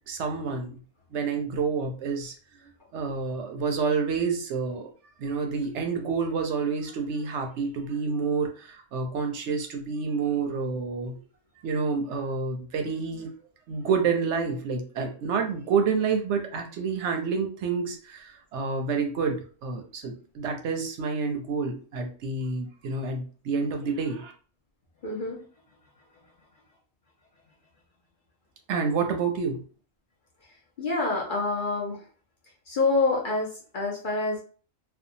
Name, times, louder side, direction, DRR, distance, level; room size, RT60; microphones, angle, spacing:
voice 1, 0.1-0.8 1.1-2.3 2.9-4.9 5.2-11.2 11.6-13.3 13.7-24.3 28.7-29.6, right 5 dB, 70° right, 4 dB, 0.8 m, -28 dB
voice 2, 25.0-25.4 30.8-32.0 32.7-34.4, left 3 dB, 50° left, -2 dB, 0.7 m, -27 dB
2.6 x 2.2 x 2.6 m, 0.40 s
omnidirectional pair, 1.3 m